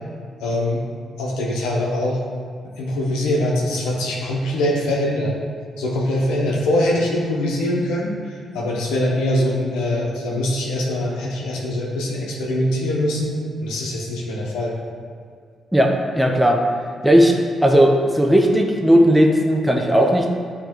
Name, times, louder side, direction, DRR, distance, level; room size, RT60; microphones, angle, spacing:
voice 1, 0.4-0.8 1.2-2.2 2.8-5.3 5.8-14.7, left 1 dB, 85° left, -3 dB, 1.2 m, -23 dB
voice 2, 15.7-16.6 17.0-17.3 17.6-20.3, equal, 5° right, 1 dB, 0.9 m, -16 dB
9.0 x 3.4 x 4.6 m, 2.1 s
hypercardioid pair, 45°, 0 cm